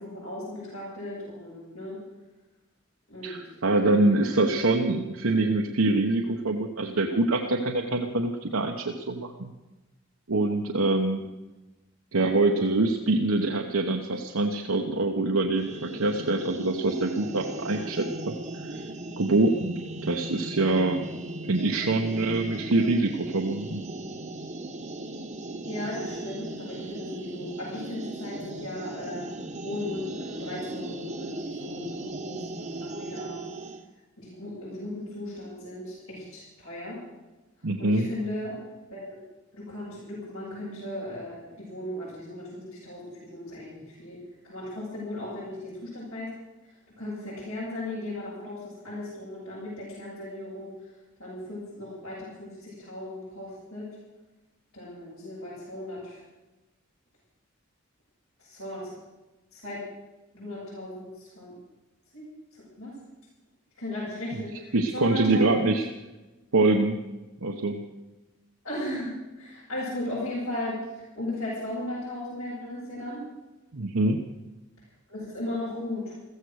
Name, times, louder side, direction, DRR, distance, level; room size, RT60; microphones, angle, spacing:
voice 1, 0.0-2.0 3.1-3.4 3.7-4.3 25.7-29.3 29.6-33.5 34.2-37.0 37.8-38.6 38.9-39.1 39.5-44.2 44.4-46.3 46.6-50.7 51.2-53.9 54.7-56.2 58.4-59.0 59.5-59.8 60.3-61.5 62.1-63.0 63.8-65.8 68.6-70.8 71.1-73.3 75.1-76.2, left 1 dB, 85° left, -9 dB, 7.3 m, -36 dB
voice 2, 3.2-9.5 10.3-11.3 12.1-18.3 18.6-18.7 19.2-21.1 21.5-23.9 37.6-38.1 64.7-65.9 66.5-67.0 67.4-67.8 73.7-74.2, right 2 dB, 75° right, 3 dB, 1.0 m, -25 dB
sound 1, 15.6-33.8, right 1 dB, 35° right, 1.1 m, -37 dB
15.0 x 15.0 x 6.5 m, 1.1 s
head